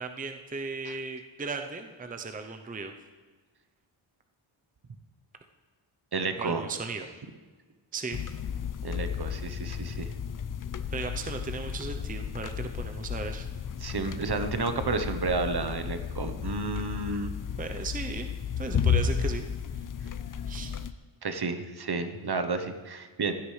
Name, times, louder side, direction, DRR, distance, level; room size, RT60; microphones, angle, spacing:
voice 1, 0.0-2.9 6.4-7.1 7.9-8.3 10.9-13.5 17.6-18.3 18.6-19.5 19.7-19.8 20.5-20.8, right 4 dB, 15° right, 6 dB, 0.6 m, -36 dB
voice 2, 6.1-6.6 8.8-10.1 13.8-17.3 21.2-23.3, right 3 dB, 50° right, 8 dB, 1.0 m, -31 dB
sound 1, 8.1-20.9, left 7 dB, 40° left, 0.5 m, -33 dB
16.0 x 11.5 x 3.2 m, 1.4 s
wide cardioid pair, 105°, 50 cm